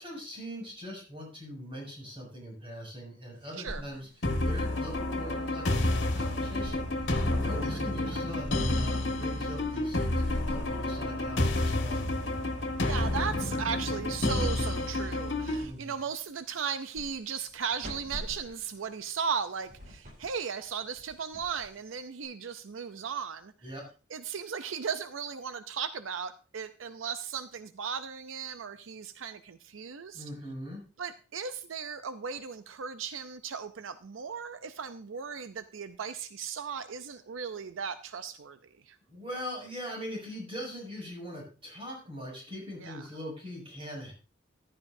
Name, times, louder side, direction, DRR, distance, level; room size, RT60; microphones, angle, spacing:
voice 1, 0.0-4.1 4.4-6.8 7.3-12.1 15.6-15.9 23.6-23.8 30.1-30.8 39.1-44.1, equal, 30° right, -1 dB, 6.9 m, -41 dB
sound 1, 3.3-22.2, left 1 dB, 45° right, 7.5 m, -47 dB
sound 2, 4.2-15.6, left 1 dB, 65° left, 1.7 m, -30 dB
voice 2, 12.8-23.5 24.1-30.3 31.0-39.0 42.8-43.1, right 6 dB, 85° right, 11 dB, 0.6 m, -37 dB
14.5 x 12.0 x 2.7 m, 0.36 s
head